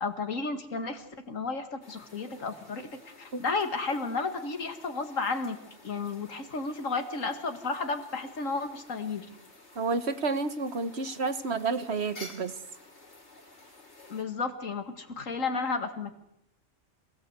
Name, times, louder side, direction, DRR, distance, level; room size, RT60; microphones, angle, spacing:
voice 1, 0.0-2.9 3.2-5.6 5.8-9.3 14.1-16.1, left 4 dB, 85° left, 7 dB, 2.4 m, -32 dB
sound 1, 1.8-14.2, left 2 dB, 60° left, 3.9 m, -52 dB
voice 2, 9.7-12.5, right 4 dB, 55° right, 11 dB, 1.5 m, -30 dB
26.5 x 17.5 x 8.2 m, 0.81 s
omnidirectional pair, 1.3 m